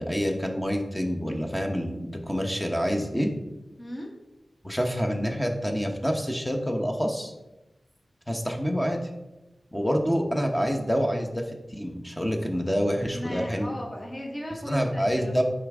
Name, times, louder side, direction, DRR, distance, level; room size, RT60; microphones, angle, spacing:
voice 1, 0.0-3.3 4.6-7.3 8.3-9.1 9.7-13.7 14.7-15.4, equal, 10° left, 2 dB, 1.0 m, -27 dB
voice 2, 3.8-4.1 13.1-15.4, left 1 dB, 25° left, -1 dB, 1.4 m, -37 dB
8.9 x 5.0 x 3.6 m, 1.0 s
wide cardioid pair, 85°, 0 cm